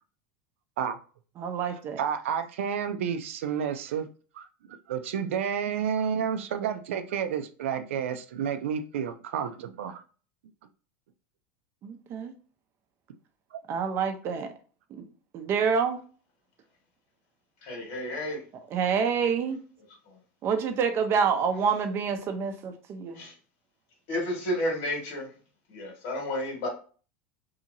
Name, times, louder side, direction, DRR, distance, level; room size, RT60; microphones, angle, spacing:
voice 1, 1.4-2.0 11.8-12.3 13.7-14.5 14.9-15.0 15.3-16.0 18.7-19.6 20.4-23.2, right 6 dB, 40° right, 0.6 m, -27 dB
voice 2, 2.0-4.1 4.3-10.0 13.5-13.6, right 8 dB, 90° right, 0.4 m, -30 dB
voice 3, 17.6-18.4 20.1-20.2 23.1-23.3 24.1-25.3 25.7-26.7, left 1 dB, 60° left, 1.6 m, -31 dB
2.8 x 2.7 x 2.6 m
supercardioid pair, 125°, 7 cm